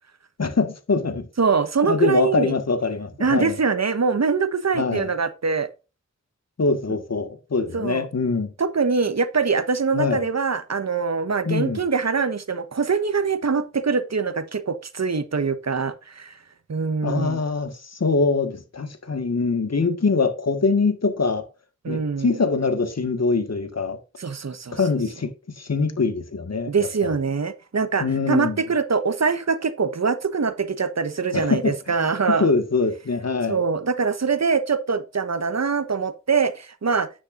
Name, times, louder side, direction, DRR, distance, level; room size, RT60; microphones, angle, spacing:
voice 1, 0.4-1.3 1.8-3.6 4.8-5.1 6.6-8.5 9.9-10.3 11.5-11.8 17.0-21.5 21.9-24.0 24.7-26.9 28.0-28.6 31.3-31.7 32.3-33.6, left 4 dB, 60° left, 1.7 m, -23 dB
voice 2, 1.4-2.5 3.2-5.7 7.7-8.1 8.6-16.3 16.7-17.4 21.8-22.4 24.2-24.8 26.7-32.5 33.5-37.1, right 5 dB, 60° right, 1.2 m, -23 dB
9.8 x 8.7 x 2.6 m
cardioid pair, 45°, 30 cm